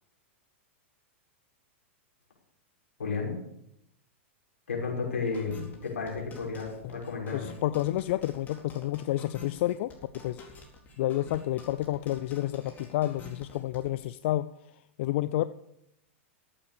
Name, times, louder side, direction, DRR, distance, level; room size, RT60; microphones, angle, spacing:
voice 1, 3.0-3.4 4.7-7.5, left 4 dB, 90° left, -1 dB, 5.8 m, -33 dB
sound 1, 5.3-13.9, left 2 dB, 25° left, 4.2 m, -48 dB
voice 2, 7.3-9.9 10.2-10.4 11.0-14.5 15.0-15.5, left 15 dB, 60° left, 14 dB, 0.5 m, -29 dB
14.0 x 8.7 x 6.8 m, 0.81 s
hypercardioid pair, 115°, 7 cm